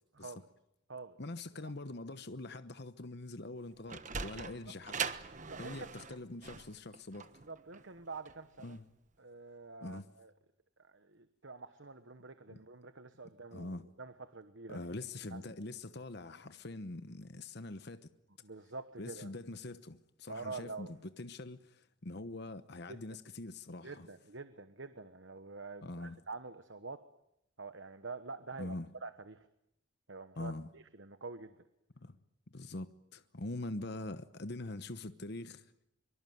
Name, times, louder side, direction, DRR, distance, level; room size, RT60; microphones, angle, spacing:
voice 1, 1.2-5.0 5.6-7.4 8.6-8.8 9.8-10.1 12.5-12.6 13.5-13.9 14.7-18.1 19.0-24.1 25.8-26.2 28.6-28.9 30.4-30.7 32.0-32.2 32.5-35.7, left 2 dB, 55° left, 1.0 m, -44 dB
Sliding door, 3.6-8.8, right 6 dB, 40° right, 1.2 m, -42 dB
voice 2, 5.4-5.9 7.5-8.8 9.2-10.3 10.8-14.8 15.3-15.4 18.4-19.3 20.3-20.9 22.9-23.0 23.8-27.0 27.6-28.7 29.0-29.5 30.1-31.6, right 3 dB, 65° right, 1.2 m, -47 dB
24.0 x 24.0 x 9.4 m
head